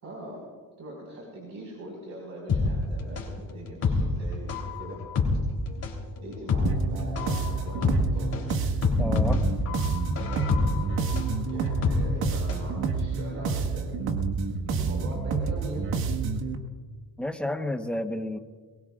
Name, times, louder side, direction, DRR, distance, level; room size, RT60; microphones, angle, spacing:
voice 1, 0.0-0.5 0.8-5.1 6.2-8.4 10.5-11.1 11.5-13.9 14.8-16.0, right 1 dB, 50° right, -3 dB, 5.3 m, -42 dB
sound 1, 2.5-12.7 13.0-13.1, left 4 dB, 45° left, 3.5 m, -27 dB
sound 2, 6.6-16.5, right 4 dB, 85° right, 1.7 m, -29 dB
voice 2, 9.0-9.4 17.2-18.4, left 1 dB, 5° left, 5 dB, 1.1 m, -30 dB
23.5 x 22.0 x 2.5 m, 1.5 s
cardioid pair, 115°, 36 cm